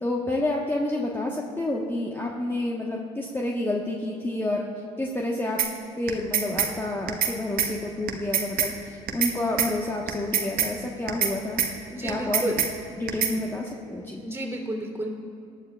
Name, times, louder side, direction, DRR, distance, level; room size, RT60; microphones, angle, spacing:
voice 1, 0.0-4.7 5.0-5.6 6.0-11.6 12.0-12.7 13.0-14.2, left 1 dB, 15° left, -2 dB, 1.3 m, -29 dB
sound 1, 5.6-5.7 6.1-6.7 7.1-7.3 7.6-7.7 8.1-8.7 9.1-9.3 9.6-9.7 10.1-10.7 11.1-11.3 11.6-11.7 12.1-12.7 13.1-13.3, right 8 dB, 55° right, 1.3 m, -24 dB
voice 2, 11.9-12.6 13.3-13.5 14.2-15.1, right 1 dB, 15° right, 1 dB, 3.1 m, -31 dB
19.0 x 11.0 x 2.4 m, 2.6 s
hypercardioid pair, 60°, 18 cm